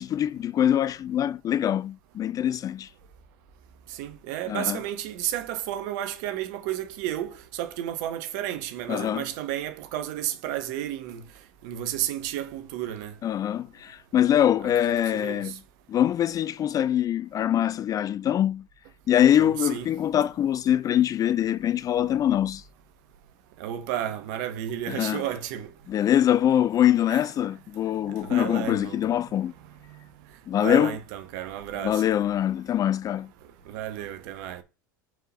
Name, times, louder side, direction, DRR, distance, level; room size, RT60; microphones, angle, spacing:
voice 1, 0.0-2.9 4.5-4.8 8.9-9.3 13.2-15.6 15.9-18.7 19.1-22.6 24.9-25.2 25.9-29.5 30.5-31.0 31.8-33.3, left 10 dB, 30° left, 0.4 m, -23 dB
voice 2, 3.9-11.2 11.6-13.1 14.8-15.6 19.4-19.9 23.6-25.7 27.1-27.2 28.1-29.0 30.5-32.0 33.7-34.6, right 11 dB, 65° right, 1.6 m, -32 dB
5.9 x 5.0 x 6.7 m
hypercardioid pair, 90°, 11 cm